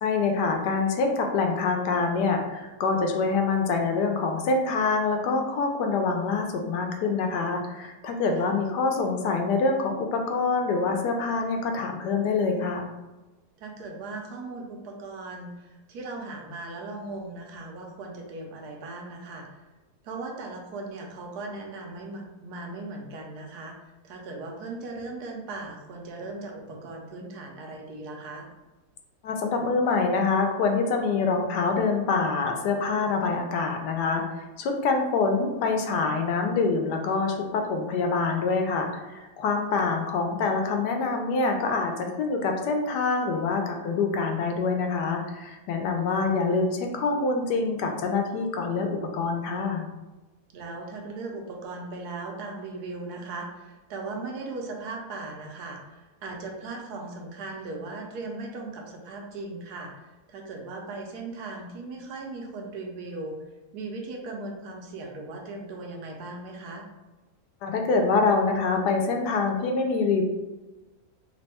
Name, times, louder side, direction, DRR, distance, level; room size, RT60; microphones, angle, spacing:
voice 1, 0.0-12.9 29.2-49.9 67.6-70.2, left 4 dB, 80° left, 3 dB, 1.2 m, -25 dB
voice 2, 13.6-19.6 20.0-28.5 39.7-39.9 45.9-46.3 50.5-63.4 63.7-66.8, right 3 dB, 75° right, 1 dB, 1.2 m, -38 dB
3.3 x 2.2 x 4.1 m, 1.1 s
omnidirectional pair, 1.8 m